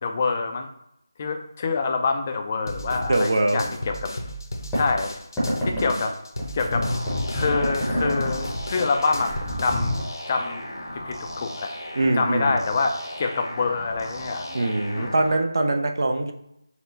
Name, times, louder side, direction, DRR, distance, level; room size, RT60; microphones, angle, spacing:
voice 1, 0.0-0.7 1.2-4.1 4.7-5.2 5.6-6.1 6.5-6.9 7.3-10.6 11.1-11.7 12.2-14.7 14.9-15.1, left 4 dB, 25° left, 4 dB, 0.4 m, -26 dB
sound 1, 2.7-10.0, equal, 65° left, 0.8 m, -34 dB
voice 2, 3.1-3.6 5.7-6.1 12.0-12.6 14.5-16.3, right 2 dB, 55° right, 4 dB, 0.6 m, -23 dB
sound 2, 4.7-4.8 5.4-5.9 6.4-8.4 8.8-9.0 9.2-10.1, left 1 dB, 5° left, 0.8 m, -27 dB
sound 3, 6.8-15.4, left 1 dB, 85° left, 1.2 m, -36 dB
4.3 x 2.1 x 3.9 m, 0.80 s
figure-of-eight pair, 170°, 2 cm